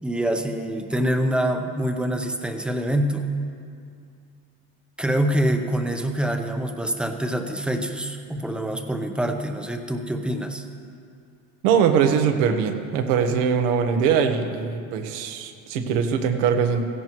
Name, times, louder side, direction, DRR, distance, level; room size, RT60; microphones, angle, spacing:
voice 1, 0.0-3.3 5.0-10.6, right 1 dB, 5° right, 5 dB, 0.7 m, -25 dB
voice 2, 11.6-16.9, right 7 dB, 90° right, 7 dB, 1.3 m, -22 dB
16.5 x 15.5 x 3.1 m, 2.3 s
cardioid pair, 150°, 36 cm